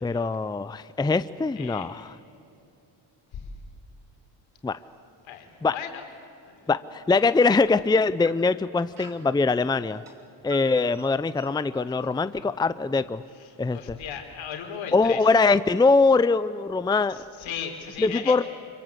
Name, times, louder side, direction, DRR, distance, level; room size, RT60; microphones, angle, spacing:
voice 1, 0.0-2.2 4.6-4.8 5.6-5.7 6.7-10.0 10.4-13.2 13.6-14.0 14.9-17.2 18.0-18.4, left 4 dB, 10° left, 14 dB, 0.6 m, -22 dB
voice 2, 1.5-1.8 3.3-3.5 5.3-5.5 5.7-6.0 6.5-6.7 13.4-15.2 17.1-18.4, left 8 dB, 75° left, 4 dB, 4.0 m, -36 dB
sound 1, 4.5-6.7 7.1-7.2 7.8-9.4 9.9-14.2, right 2 dB, 45° right, 4.0 m, -50 dB
26.0 x 23.5 x 8.2 m, 2.6 s
cardioid pair, 85°, 46 cm